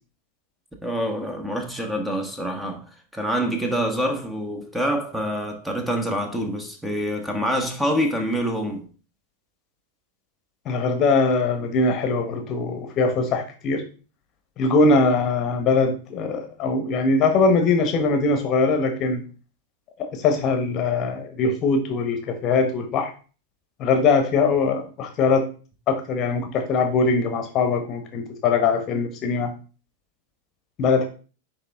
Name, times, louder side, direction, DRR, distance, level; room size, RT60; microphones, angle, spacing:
voice 1, 0.8-2.9 3.1-8.8, equal, 5° right, 1.3 m, -26 dB
voice 2, 10.6-13.8 14.6-19.2 20.1-23.1 23.8-25.5 25.9-29.5 30.8-31.0, left 4 dB, 35° left, 1.1 m, -21 dB
9.7 x 3.5 x 3.6 m
figure-of-eight pair, 90°, 0 cm